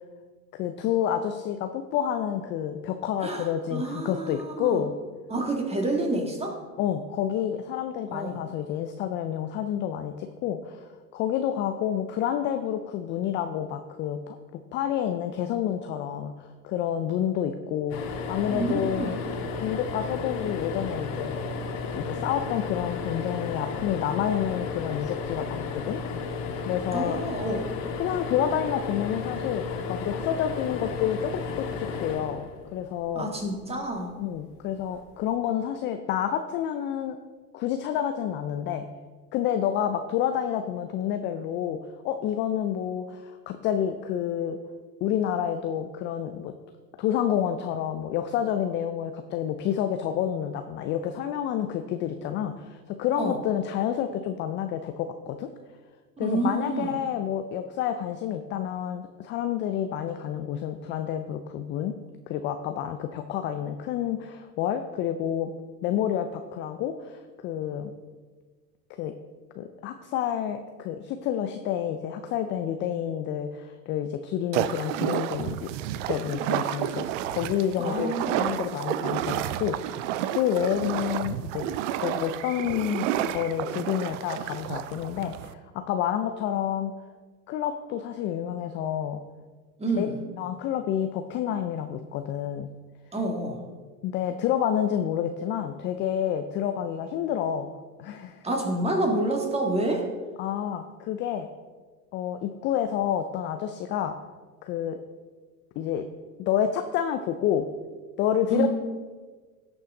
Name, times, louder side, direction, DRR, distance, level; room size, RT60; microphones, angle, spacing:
voice 1, 0.5-5.0 6.8-14.4 14.7-19.1 19.6-21.5 21.9-26.0 26.7-27.2 28.0-32.4 32.7-33.3 34.2-37.2 37.5-38.9 39.3-41.8 42.0-44.6 45.0-46.5 47.0-55.5 56.2-61.9 62.3-65.5 65.8-67.9 69.0-69.1 69.6-75.7 76.1-81.7 82.0-86.9 87.5-89.2 90.0-90.1 90.4-92.7 94.0-97.7 98.0-98.4 100.4-101.5 102.1-104.1 104.6-105.0 105.8-106.0 106.4-107.7 108.2-108.7, left 10 dB, 25° left, 8 dB, 0.4 m, -29 dB
voice 2, 3.2-4.8 5.3-6.6 8.1-8.4 18.5-19.3 26.9-27.7 33.2-34.1 53.2-53.4 56.2-57.0 77.8-78.5 89.8-90.2 93.1-93.6 98.4-100.0 108.5-108.7, right 2 dB, 10° right, 2 dB, 2.0 m, -28 dB
sound 1, 17.9-33.2 34.8-35.0 35.3-35.4, left 5 dB, 50° left, 1.7 m, -33 dB
sound 2, 74.5-85.5, right 12 dB, 50° right, 0.6 m, -30 dB
16.5 x 6.2 x 3.8 m, 1.4 s
hypercardioid pair, 95°, 49 cm